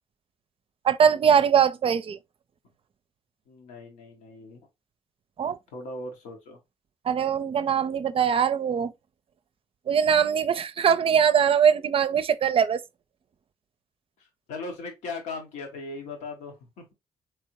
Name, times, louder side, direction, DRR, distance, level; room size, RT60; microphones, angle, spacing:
voice 1, 0.8-2.2 5.4-5.6 7.0-8.9 9.9-12.8, right 7 dB, 50° right, 0.5 m, -22 dB
voice 2, 3.5-4.6 5.7-6.6 14.2-16.9, left 3 dB, 85° left, 1.0 m, -38 dB
3.5 x 3.3 x 2.9 m
supercardioid pair, 50°, 12 cm